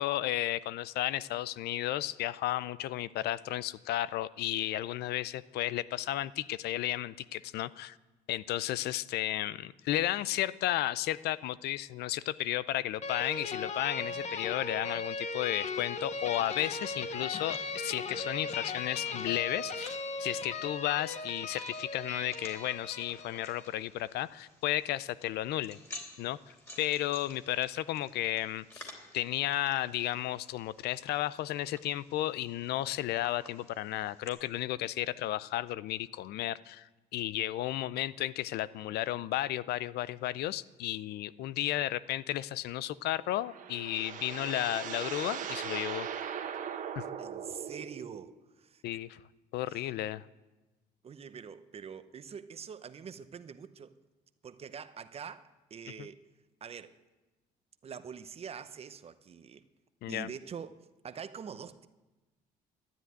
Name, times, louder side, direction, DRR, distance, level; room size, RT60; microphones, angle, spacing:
voice 1, 0.0-7.9 8.3-25.8 26.2-46.1 47.0-47.1 48.8-49.2 49.5-50.3 56.0-56.1 60.0-60.3, left 14 dB, 75° left, 0.5 m, -33 dB
sound 1, 13.0-23.8, left 3 dB, 40° left, 1.1 m, -38 dB
sound 2, 15.3-34.3, left 2 dB, 15° left, 3.4 m, -54 dB
sound 3, 43.1-48.3, right 8 dB, 50° right, 1.5 m, -39 dB
voice 2, 47.2-48.3 48.6-48.8 49.7-49.9 51.0-54.0 54.4-56.3 56.6-57.0 57.8-59.7 60.1-61.9, right 7 dB, 35° right, 0.8 m, -45 dB
12.5 x 10.5 x 9.3 m
cardioid pair, 110°, 17 cm